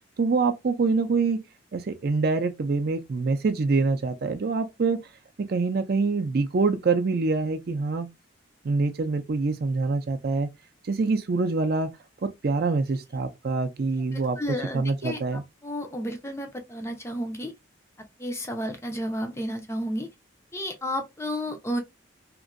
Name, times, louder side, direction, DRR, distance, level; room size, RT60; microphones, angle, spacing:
voice 1, 0.2-1.4 1.7-5.1 5.4-8.1 8.6-10.5 10.9-11.9 12.2-14.4 14.7-15.4, right 4 dB, 50° right, 0.4 m, -25 dB
voice 2, 14.1-15.2 15.6-17.5 18.2-20.1 20.5-21.8, equal, 15° left, 0.4 m, -32 dB
2.9 x 2.6 x 2.5 m
head